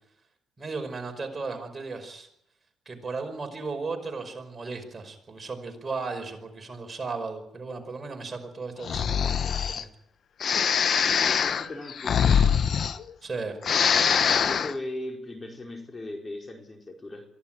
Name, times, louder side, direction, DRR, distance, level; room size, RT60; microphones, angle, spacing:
voice 1, 0.6-2.3 2.9-9.9 13.2-13.6, right 4 dB, 30° right, 5 dB, 5.2 m, -35 dB
Breathing, 8.8-9.8 10.4-13.3 13.6-14.7, left 7 dB, 55° left, 1.1 m, -23 dB
voice 2, 11.0-12.6 14.3-17.2, left 1 dB, 25° left, 2 dB, 4.7 m, -38 dB
23.5 x 16.0 x 9.1 m, 0.79 s
cardioid pair, 90°, 0 cm